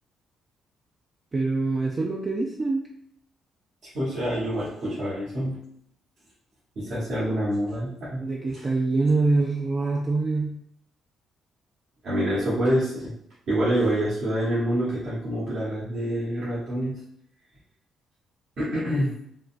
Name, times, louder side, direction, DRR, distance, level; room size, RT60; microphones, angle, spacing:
voice 1, 1.3-2.9 8.2-10.6, right 3 dB, 30° right, 0 dB, 0.4 m, -25 dB
voice 2, 3.9-5.6 6.8-8.2 12.0-13.1 13.5-17.0 18.6-19.1, equal, 65° right, -10 dB, 1.2 m, -26 dB
3.7 x 2.2 x 2.5 m, 0.70 s
cardioid pair, 90°, 0 cm